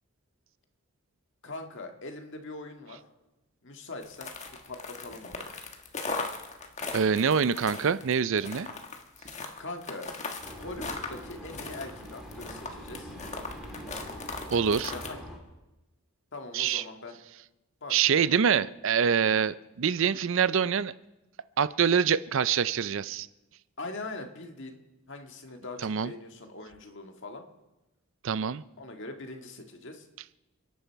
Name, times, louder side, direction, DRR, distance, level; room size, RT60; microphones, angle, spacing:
voice 1, 1.4-3.0 3.6-4.3 4.7-5.5 9.6-10.1 10.5-13.1 14.9-15.2 16.3-17.2 17.8-18.3 23.8-24.8 25.1-27.4 28.8-30.1, left 2 dB, 55° left, 5 dB, 1.8 m, -42 dB
sound 1, 4.0-15.1, left 3 dB, 30° left, 1.5 m, -38 dB
voice 2, 6.9-8.7 14.5-14.9 16.5-16.8 17.9-20.9 21.6-23.3 25.8-26.1 28.2-28.6, right 7 dB, 60° right, 17 dB, 0.5 m, -25 dB
Vehicle, 10.4-15.4, equal, ahead, 2.9 m, -44 dB
29.5 x 10.5 x 4.6 m, 1.0 s
head